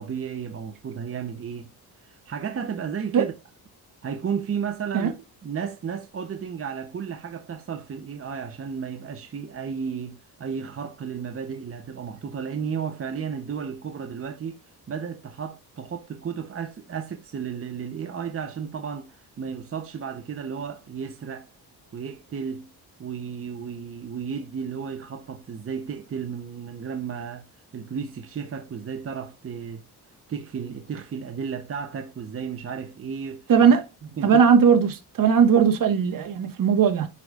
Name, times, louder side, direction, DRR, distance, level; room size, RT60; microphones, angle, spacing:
voice 1, 0.0-1.7 2.0-3.3 4.0-5.2 5.4-14.6 14.9-21.5 21.9-22.7 23.0-27.4 27.7-29.8 30.3-33.5 34.2-34.4, right 6 dB, 35° right, 0.8 m, -33 dB
voice 2, 33.5-33.8 34.2-37.1, right 7 dB, 55° right, 1.5 m, -18 dB
10.5 x 4.9 x 2.4 m
cardioid pair, 145°, 40 cm